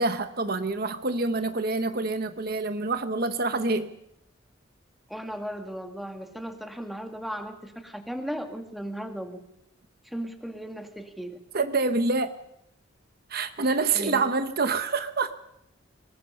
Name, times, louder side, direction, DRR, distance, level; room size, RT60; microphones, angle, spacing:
voice 1, 0.0-3.9 11.5-12.3 13.3-15.3, right 3 dB, 50° right, 9 dB, 1.0 m, -26 dB
voice 2, 5.1-9.4 10.0-11.4 13.9-14.2, equal, ahead, 5 dB, 1.9 m, -36 dB
24.5 x 20.0 x 5.6 m, 0.80 s
head